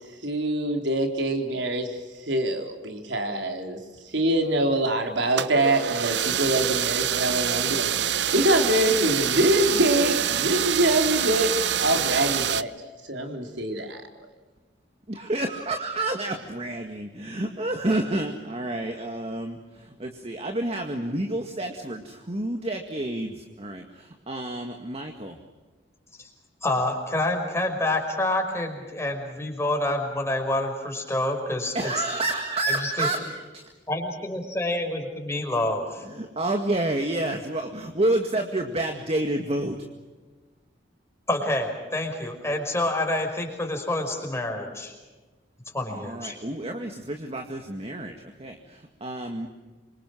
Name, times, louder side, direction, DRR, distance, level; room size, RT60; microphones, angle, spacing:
voice 1, 0.2-2.0 2.3-3.8 4.1-11.5 11.8-12.7 13.1-14.0, right 1 dB, 90° right, 4 dB, 4.1 m, -24 dB
sound 1, 5.3-12.6, right 10 dB, 70° right, 0.8 m, -26 dB
voice 2, 15.1-25.4 31.7-33.7 36.0-39.9 45.9-49.5, right 1 dB, 35° right, 4 dB, 2.0 m, -29 dB
voice 3, 26.6-31.9 32.8-33.1 33.9-36.0 41.3-44.9 45.7-46.3, left 1 dB, 15° left, 2 dB, 5.4 m, -27 dB
27.5 x 25.0 x 6.3 m, 1.2 s
head